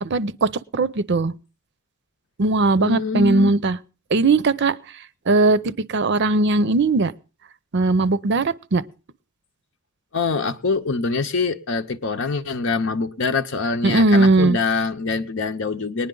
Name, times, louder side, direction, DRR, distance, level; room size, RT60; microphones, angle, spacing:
voice 1, 0.0-1.3 2.4-3.8 4.1-4.7 5.3-7.1 7.7-8.8 13.8-14.6, right 3 dB, 55° right, 0.6 m, -19 dB
voice 2, 2.8-3.5 10.1-16.1, left 4 dB, 65° left, 0.7 m, -24 dB
19.5 x 10.0 x 3.8 m
head